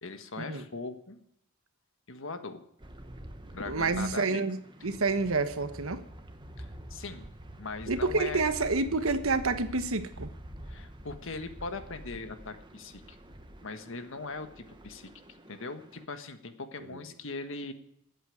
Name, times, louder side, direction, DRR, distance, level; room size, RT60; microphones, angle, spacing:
voice 1, 0.0-1.2 2.1-2.6 3.5-4.5 4.8-4.9 6.6-7.3 7.6-8.4 10.6-13.2 13.6-17.7, left 3 dB, 65° left, 8 dB, 1.5 m, -40 dB
sound 1, 2.8-16.0, right 1 dB, 25° right, 1.1 m, -47 dB
voice 2, 3.7-4.6 4.8-6.0 7.9-10.3, right 3 dB, 85° right, 10 dB, 1.3 m, -28 dB
13.5 x 8.3 x 9.6 m, 0.76 s
head